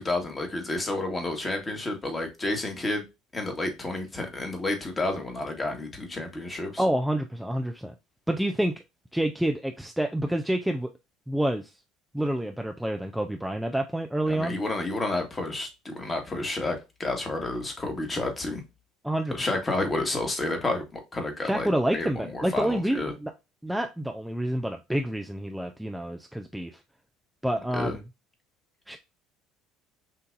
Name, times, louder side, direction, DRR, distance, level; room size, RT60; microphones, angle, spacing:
voice 1, 0.0-3.0 3.3-6.8 14.2-18.6 19.3-23.1 27.7-28.0, left 2 dB, 25° left, 1.5 m, -30 dB
voice 2, 6.8-7.9 8.3-8.7 9.1-10.9 11.3-11.7 12.1-14.6 19.0-19.5 21.4-23.3 23.6-26.7 27.4-28.0 28.9-29.0, right 1 dB, 5° right, 0.5 m, -28 dB
5.8 x 2.7 x 2.5 m
hypercardioid pair, 65°, 0 cm